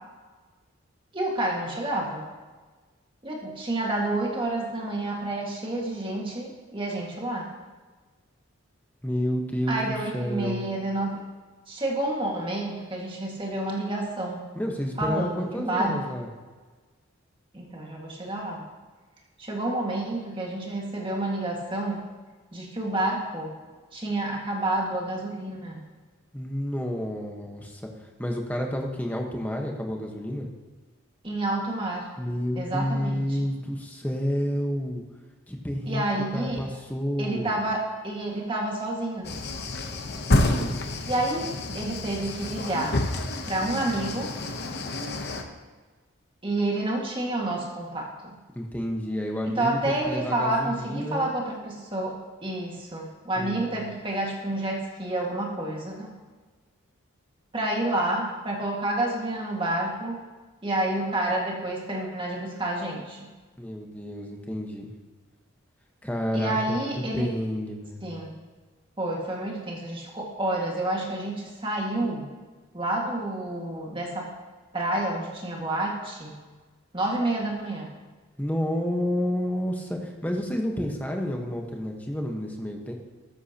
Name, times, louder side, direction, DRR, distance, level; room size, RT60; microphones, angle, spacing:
voice 1, 1.1-2.3 3.2-7.5 9.7-11.2 11.7-14.4 15.0-16.0 17.5-18.6 19.4-22.0 22.5-23.5 23.9-25.8 31.2-32.1 32.6-33.4 35.9-36.7 37.2-39.4 41.1-43.1 43.5-44.3 46.4-48.4 49.4-56.1 57.5-60.2 60.6-63.3 66.3-67.3 68.0-68.4 69.0-72.2 72.7-74.3 74.7-76.4 76.9-78.0, right 1 dB, 25° right, -2 dB, 1.9 m, -29 dB
voice 2, 9.0-10.7 14.5-16.3 26.3-30.5 32.2-35.0 35.5-37.5 40.3-40.8 48.5-51.3 53.4-53.7 63.6-64.9 66.0-68.1 78.4-82.9, equal, 10° left, 1 dB, 1.2 m, -30 dB
sound 1, 39.2-45.4, left 2 dB, 50° left, 1.0 m, -29 dB
13.5 x 13.5 x 2.9 m, 1.3 s
head